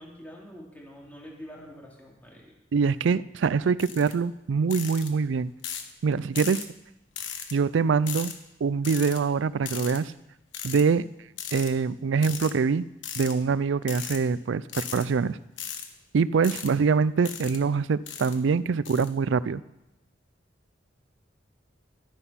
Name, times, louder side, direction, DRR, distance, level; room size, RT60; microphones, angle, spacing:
voice 1, 0.0-2.5, equal, 10° left, -3 dB, 2.7 m, -45 dB
voice 2, 2.7-5.5 6.0-6.6 7.5-8.3 8.6-10.1 10.6-11.1 11.5-12.9 13.2-15.4 16.1-19.6, right 5 dB, 80° right, 18 dB, 0.4 m, -24 dB
sound 1, 3.8-4.1 4.7-5.1 5.6-5.9 6.4-6.7 7.2-7.5 8.1-8.3 8.8-9.2 9.7-10.0 10.5-10.8 11.4-11.7 12.2-12.5 13.0-13.3 13.8-14.2 14.7-15.0 15.6-15.9 16.4-16.7 17.2-17.6 18.1-18.4 18.9-19.1, left 8 dB, 80° left, 1.3 m, -36 dB
12.0 x 9.8 x 5.7 m, 0.92 s
head